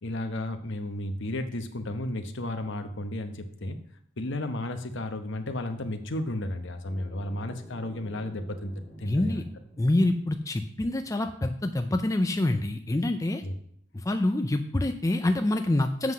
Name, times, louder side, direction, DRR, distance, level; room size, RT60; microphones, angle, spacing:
voice 1, 0.0-3.8 4.2-8.7 9.0-9.4 13.4-13.6, left 1 dB, 60° left, 8 dB, 1.0 m, -33 dB
sound 1, 6.8-10.8, right 1 dB, 90° right, 3.6 m, -50 dB
voice 2, 9.0-9.4 9.8-13.4 13.9-16.1, left 1 dB, 15° left, 7 dB, 0.4 m, -26 dB
7.8 x 5.7 x 6.1 m, 0.66 s
head